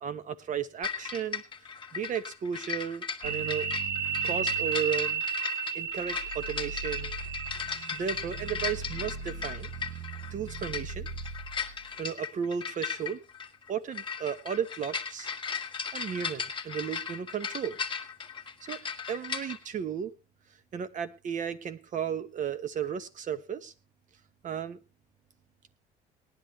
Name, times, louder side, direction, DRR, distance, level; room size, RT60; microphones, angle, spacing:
voice 1, 0.0-1.4 1.9-3.7 4.2-5.2 5.7-7.2 7.9-9.7 10.3-11.1 12.0-13.2 13.7-15.3 15.9-17.8 18.7-18.8 19.1-20.1 20.7-23.7 24.4-24.8, right 8 dB, 50° right, 13 dB, 1.2 m, -34 dB
sound 1, 0.8-19.6, left 6 dB, 30° left, 1.5 m, -37 dB
sound 2, 3.2-11.8, right 6 dB, 70° right, 1.9 m, -34 dB
19.0 x 10.5 x 2.9 m, 0.26 s
cardioid pair, 110°, 17 cm